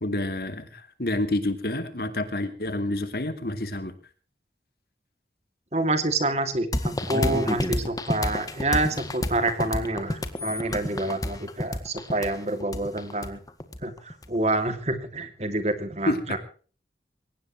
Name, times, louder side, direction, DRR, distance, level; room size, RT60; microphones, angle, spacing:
voice 1, 0.0-3.9 16.1-16.4, left 1 dB, 60° left, 10 dB, 2.6 m, -28 dB
voice 2, 5.7-13.4 13.8-16.4, right 2 dB, 40° right, 9 dB, 2.7 m, -27 dB
sound 1, 6.7-14.3, left 1 dB, 20° left, 1.8 m, -29 dB
23.0 x 18.5 x 3.2 m, 0.40 s
head